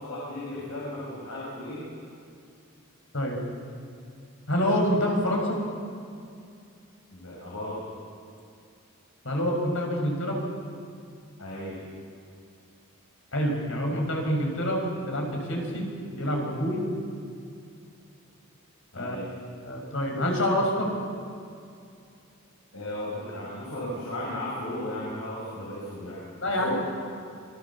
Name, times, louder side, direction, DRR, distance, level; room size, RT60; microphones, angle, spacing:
voice 1, 0.0-1.9 7.1-7.8 11.4-11.8 18.9-19.3 22.7-26.2 26.6-26.7, left 1 dB, 80° left, -6 dB, 7.0 m, -35 dB
voice 2, 4.5-5.6 9.2-10.4 13.3-15.9 16.1-16.9 19.0-19.2 19.7-20.9 26.4-26.7, equal, 65° left, 1 dB, 6.1 m, -26 dB
27.5 x 21.0 x 7.4 m, 2.4 s
head